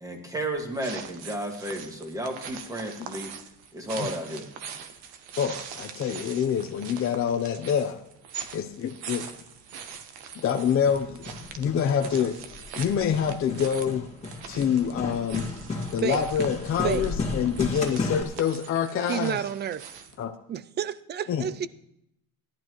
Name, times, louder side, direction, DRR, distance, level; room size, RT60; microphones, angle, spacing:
voice 1, 0.0-3.3 3.7-4.4, right 1 dB, 10° right, 2 dB, 1.8 m, -33 dB
sound 1, 0.6-20.2, right 7 dB, 85° right, 1.2 m, -42 dB
voice 2, 5.4-8.0 8.5-9.3 10.4-11.2 11.5-12.4 12.8-14.1 14.5-15.5 15.9-19.4 20.2-20.3 21.3-21.5, left 8 dB, 35° left, 4 dB, 0.7 m, -26 dB
Hammer, 10.7-18.2, left 3 dB, 20° left, 1.9 m, -34 dB
voice 3, 19.1-19.9 20.5-21.7, right 9 dB, 30° right, 17 dB, 0.4 m, -30 dB
17.5 x 11.5 x 3.1 m, 0.77 s
cardioid pair, 160°, 37 cm